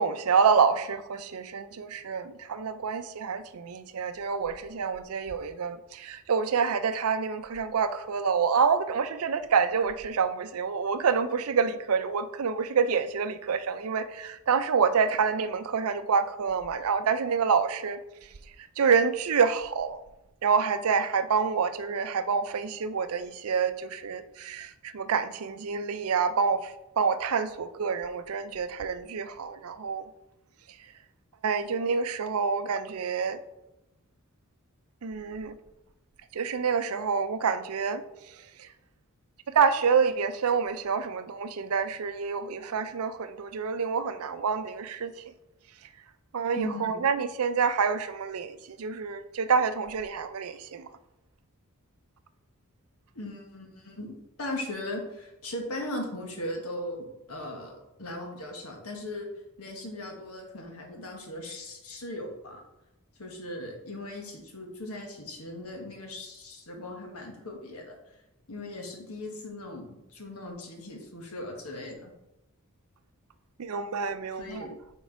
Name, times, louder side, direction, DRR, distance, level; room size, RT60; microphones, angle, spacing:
voice 1, 0.0-18.0 18.6-20.0 20.4-30.1 31.4-33.4 35.0-35.6 36.3-38.7 39.5-45.3 46.3-50.9 73.6-74.7, right 6 dB, 75° right, 0.5 m, -27 dB
voice 2, 46.5-47.0 53.1-59.3 59.6-62.6 63.2-68.0 68.5-72.1 74.4-74.7, left 1 dB, 75° left, 1.5 m, -38 dB
6.4 x 4.6 x 4.6 m
head